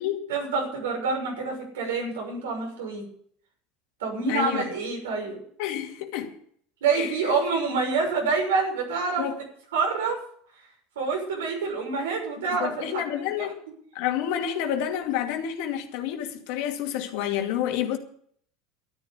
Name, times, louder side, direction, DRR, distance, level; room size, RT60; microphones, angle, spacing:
voice 1, 0.3-3.0 4.0-5.4 6.8-9.3 9.7-10.2 10.9-12.9 13.2-13.5, right 4 dB, 85° right, 6.4 m, -27 dB
voice 2, 4.3-4.6 5.6-6.3 6.9-7.1 9.2-9.4 12.6-13.6 13.9-18.0, left 10 dB, 70° left, 2.4 m, -29 dB
12.5 x 10.0 x 8.2 m
hypercardioid pair, 100°, 0 cm